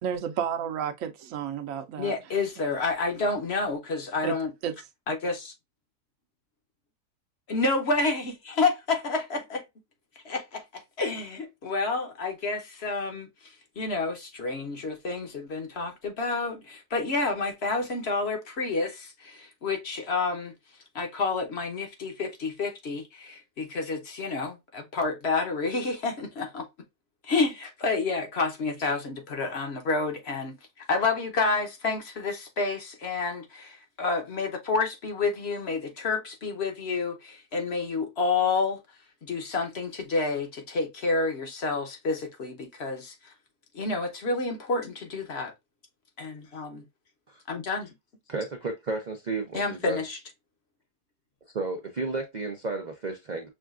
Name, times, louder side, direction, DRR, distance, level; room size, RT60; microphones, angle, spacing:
voice 1, 0.0-2.1 2.6-2.8 4.2-4.4 4.6-4.7, right 8 dB, 65° right, 1.0 m, -31 dB
voice 2, 2.0-4.5 5.1-5.5 7.5-9.4 11.0-13.3 13.8-20.5 20.9-26.7 27.2-30.6 30.9-38.8 39.2-43.3 43.7-45.5 46.2-46.8 47.5-47.9 49.5-50.2, left 3 dB, 50° left, 0.9 m, -29 dB
voice 3, 48.3-50.0 51.5-53.5, right 3 dB, 80° right, 0.4 m, -32 dB
6.3 x 2.4 x 2.4 m
omnidirectional pair, 1.7 m